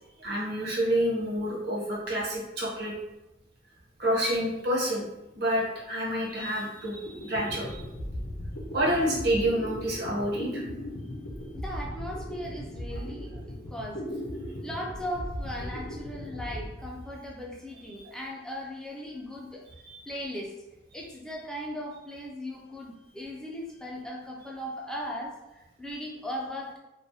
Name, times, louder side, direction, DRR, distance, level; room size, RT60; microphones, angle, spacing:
voice 1, 0.2-2.9 4.0-5.0 5.3-7.8 8.7-10.6 17.9-18.0 19.8-20.0, equal, 60° right, -4 dB, 0.7 m, -28 dB
sound 1, 6.8-6.9 7.1-17.5, equal, 80° left, 0.5 m, -38 dB
voice 2, 11.5-14.1 14.6-19.6 20.1-20.5 20.9-26.8, equal, 5° left, -3 dB, 0.3 m, -38 dB
2.3 x 2.0 x 2.6 m, 0.97 s
head